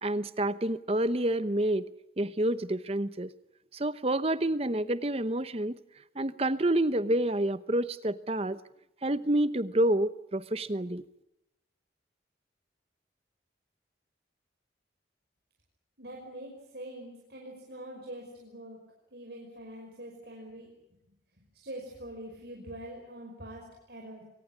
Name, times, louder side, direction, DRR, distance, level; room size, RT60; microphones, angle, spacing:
voice 1, 0.0-1.8 2.2-3.3 3.7-5.8 6.1-8.6 9.0-11.0, right 1 dB, 35° right, 14 dB, 0.9 m, -28 dB
voice 2, 16.0-18.8 19.1-20.7 21.0-24.2, right 1 dB, 65° right, 0 dB, 5.6 m, -44 dB
24.0 x 19.0 x 9.6 m, 0.86 s
head